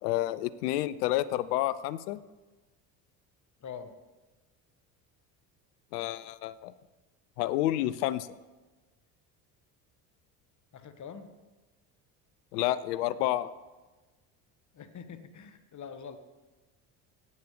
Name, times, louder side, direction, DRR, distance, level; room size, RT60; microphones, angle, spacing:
voice 1, 0.0-2.2 5.9-6.7 7.4-8.3 12.5-13.5, left 14 dB, 85° left, 17 dB, 0.6 m, -29 dB
voice 2, 3.6-3.9 10.7-11.3 14.7-16.2, left 7 dB, 40° left, 9 dB, 1.4 m, -44 dB
18.0 x 8.4 x 3.3 m, 1.2 s
hypercardioid pair, 65°, 46 cm